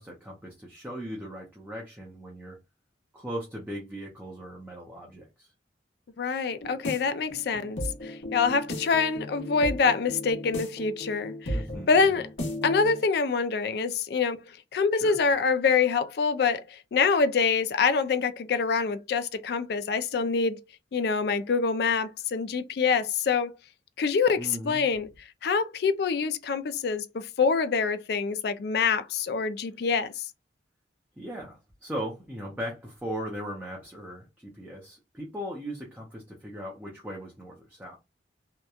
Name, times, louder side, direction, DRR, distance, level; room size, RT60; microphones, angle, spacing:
voice 1, 0.0-2.6 3.1-5.5 11.5-11.9 15.0-15.2 24.4-24.9 31.2-38.0, equal, 10° right, 0.5 m, -38 dB
voice 2, 6.2-11.6 11.9-12.3 12.6-14.4 14.7-20.6 20.9-23.5 24.0-25.1 25.4-30.2, left 5 dB, 60° left, 0.3 m, -25 dB
sound 1, 6.5-13.0, left 1 dB, 85° left, 1.0 m, -36 dB
2.9 x 2.1 x 2.3 m
head